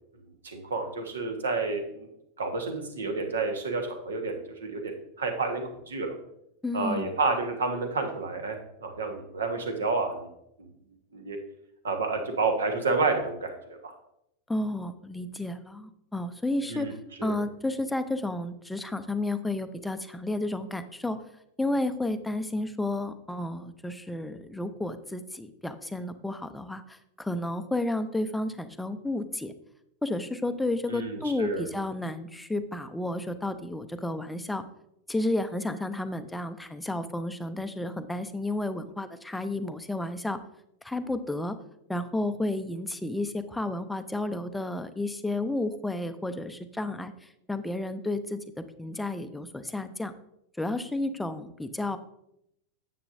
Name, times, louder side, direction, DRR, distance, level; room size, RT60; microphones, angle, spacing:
voice 1, 0.4-2.1 2.4-6.1 6.7-10.3 10.6-10.7 11.1-11.4 11.8-13.9 16.7-16.9 17.2-17.4 30.9-31.7, right 3 dB, 70° right, 5 dB, 1.3 m, -30 dB
voice 2, 6.6-7.2 14.5-16.9 17.2-21.2 21.6-29.5 30.0-34.6 35.1-40.4 40.8-41.6 41.9-50.1 50.6-52.0, left 2 dB, 5° left, 9 dB, 0.6 m, -32 dB
9.8 x 7.6 x 2.6 m, 0.80 s
figure-of-eight pair, 90°, 0 cm